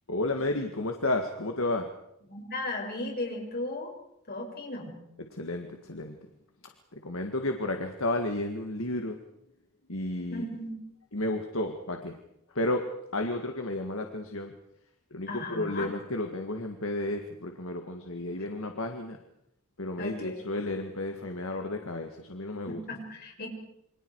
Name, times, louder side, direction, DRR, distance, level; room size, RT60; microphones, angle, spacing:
voice 1, 0.1-1.9 5.4-6.2 6.9-9.2 9.9-10.4 11.1-12.2 12.5-12.8 13.1-14.5 15.1-19.2 19.8-22.8, left 2 dB, 65° left, 4 dB, 2.0 m, -32 dB
voice 2, 2.3-3.9 4.3-4.9 10.3-10.7 15.3-15.9 20.0-20.4 22.7-23.5, left 2 dB, 45° left, 1 dB, 6.5 m, -36 dB
28.5 x 25.5 x 4.8 m, 0.80 s
head